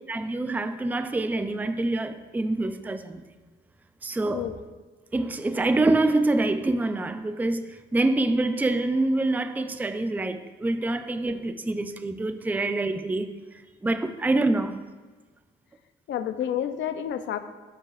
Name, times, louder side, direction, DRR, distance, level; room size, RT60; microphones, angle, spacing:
voice 1, 0.1-3.2 4.0-4.5 5.1-13.3 13.8-14.8, right 2 dB, 10° right, 0.4 m, -26 dB
voice 2, 16.1-17.4, left 10 dB, 70° left, 0.6 m, -29 dB
12.0 x 5.5 x 2.5 m
cardioid pair, 90°, 20 cm